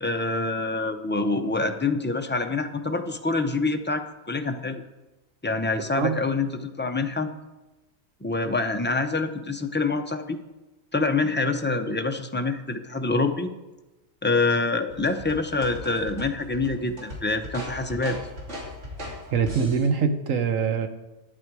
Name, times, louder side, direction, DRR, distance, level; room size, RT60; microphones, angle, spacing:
voice 1, 0.0-4.8 5.4-7.3 8.2-10.4 10.9-13.5 14.2-18.2, left 3 dB, 20° left, 6 dB, 0.3 m, -26 dB
voice 2, 5.8-6.2 19.3-20.9, right 6 dB, 75° right, 8 dB, 1.3 m, -24 dB
sound 1, 14.9-19.9, left 1 dB, 60° right, 2.8 m, -38 dB
11.0 x 9.6 x 4.7 m, 1.0 s
omnidirectional pair, 1.4 m